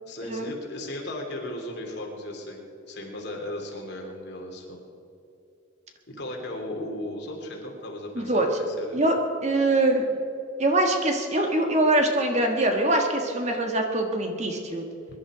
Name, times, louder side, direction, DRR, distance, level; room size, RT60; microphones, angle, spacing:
voice 1, 0.1-4.8 6.1-9.1, left 1 dB, 55° left, 0 dB, 3.0 m, -36 dB
voice 2, 8.1-8.5 8.9-9.1 9.4-10.1 10.6-14.8, right 1 dB, 35° right, 3 dB, 1.5 m, -23 dB
23.0 x 11.5 x 5.0 m, 2.7 s
head